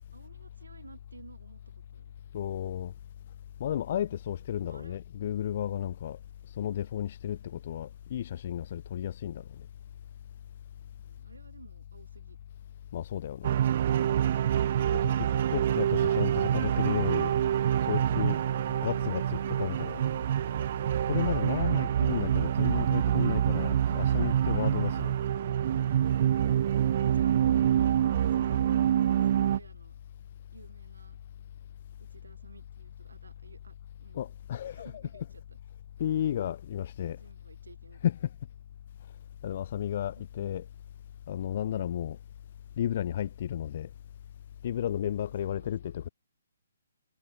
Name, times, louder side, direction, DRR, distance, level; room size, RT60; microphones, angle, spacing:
voice 1, 0.1-2.1 4.3-5.0 7.4-7.6 11.0-12.4 26.8-28.0 28.3-30.0 30.5-31.2 32.0-33.8 34.0-34.3 34.6-35.6 36.0-36.4 37.0-38.1 40.1-40.2 45.3-45.9, right 3 dB, 75° right, 6.3 m, -54 dB
voice 2, 2.3-2.9 3.6-6.2 6.6-9.4 12.9-13.6 15.5-17.3 17.9-18.4 18.8-20.0 21.1-25.1 34.1-35.3 36.0-37.2 38.0-38.2 39.4-40.7 41.3-42.2 42.8-43.9 44.6-46.1, left 10 dB, 45° left, 0.8 m, -33 dB
sound 1, 13.4-29.6, right 10 dB, 45° right, 0.5 m, -26 dB
figure-of-eight pair, 135°, 0 cm